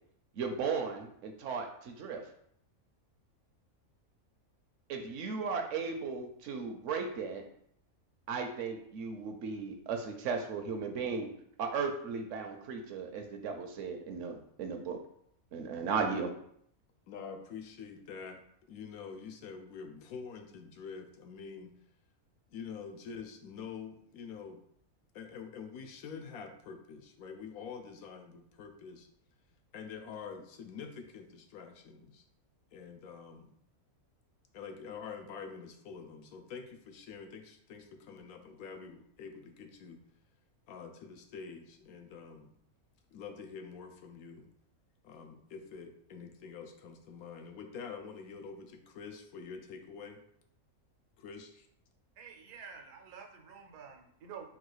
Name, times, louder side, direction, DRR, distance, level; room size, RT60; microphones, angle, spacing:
voice 1, 0.3-2.2 4.9-7.4 8.3-11.3 11.6-15.0 15.5-16.3, right 5 dB, 65° right, 5 dB, 0.8 m, -36 dB
voice 2, 17.1-18.4 18.7-21.7 22.5-24.6 25.1-29.1 29.7-32.2 32.7-33.5 34.5-40.0 40.7-42.5 43.1-44.5 45.0-50.2 51.2-51.7, left 6 dB, 80° left, 5 dB, 1.0 m, -46 dB
voice 3, 52.2-54.6, right 6 dB, 90° right, 3 dB, 1.2 m, -49 dB
3.9 x 2.4 x 4.6 m, 0.68 s
omnidirectional pair, 1.5 m